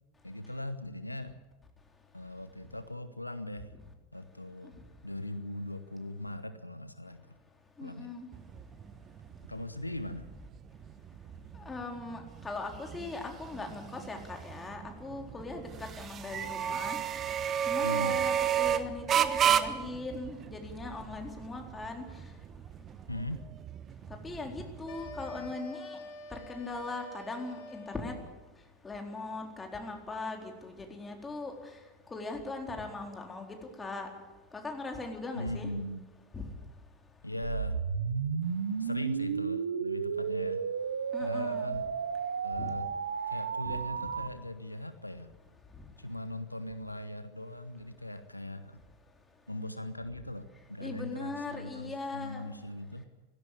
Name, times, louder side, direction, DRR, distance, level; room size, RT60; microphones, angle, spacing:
voice 1, 0.2-1.4 2.1-3.8 4.1-4.8 5.0-7.4 7.8-8.1 9.5-10.3 17.8-18.3 23.1-23.4 35.3-36.0 37.2-37.9 38.8-40.6 41.2-41.9 42.4-42.9 43.3-45.3 46.0-48.8 49.5-53.0, left 1 dB, 90° left, 12 dB, 1.0 m, -39 dB
voice 2, 7.8-8.3 11.7-17.0 17.7-22.0 24.2-26.0 26.3-28.1 28.8-31.5 32.1-34.1 34.5-35.7 36.3-36.4 41.1-41.7 42.6-42.7 50.8-52.5, left 3 dB, 15° left, 2 dB, 4.2 m, -40 dB
sound 1, 8.3-25.5, right 9 dB, 30° right, 1.2 m, -33 dB
sound 2, 24.9-28.4, left 3 dB, 55° left, 3.4 m, -46 dB
sound 3, 37.4-44.3, right 6 dB, 75° right, 0.9 m, -33 dB
18.0 x 16.5 x 9.8 m, 1.1 s
figure-of-eight pair, 85°, 0 cm